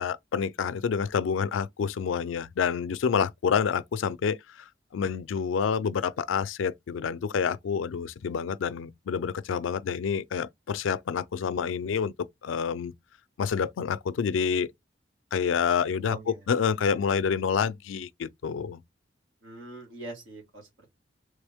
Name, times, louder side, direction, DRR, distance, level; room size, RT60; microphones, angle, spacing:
voice 1, 0.0-12.1 12.4-12.9 13.4-14.7 15.3-16.2 16.5-18.8, left 6 dB, 85° left, 0.4 m, -28 dB
voice 2, 16.0-16.5 19.4-20.9, right 2 dB, 90° right, 1.9 m, -42 dB
3.5 x 3.3 x 3.4 m
head